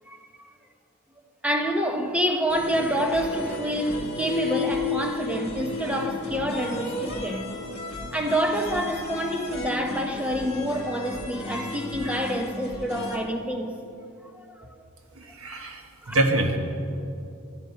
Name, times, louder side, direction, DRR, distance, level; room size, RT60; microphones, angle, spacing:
voice 1, 0.1-0.5 1.4-7.5 7.9-13.9 14.3-14.7 15.5-15.7 16.0-16.2, equal, 5° right, 0.9 m, -28 dB
sound 1, 2.5-13.2, left 2 dB, 30° left, 2.2 m, -33 dB
voice 2, 15.2-15.8 16.1-16.6, right 2 dB, 80° right, 1.4 m, -24 dB
13.5 x 12.0 x 5.7 m
head